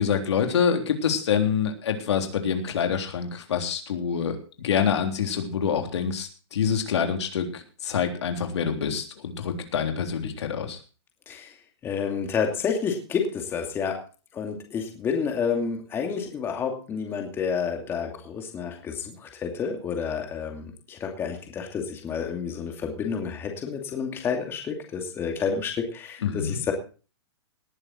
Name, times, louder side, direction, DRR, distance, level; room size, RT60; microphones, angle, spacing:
voice 1, 0.0-10.8 26.2-26.6, left 7 dB, 75° left, 5 dB, 3.5 m, -26 dB
voice 2, 11.8-14.0 14.3-26.7, left 6 dB, 15° left, 3 dB, 2.5 m, -29 dB
19.0 x 9.9 x 4.4 m, 0.36 s
hypercardioid pair, 160°, 14 cm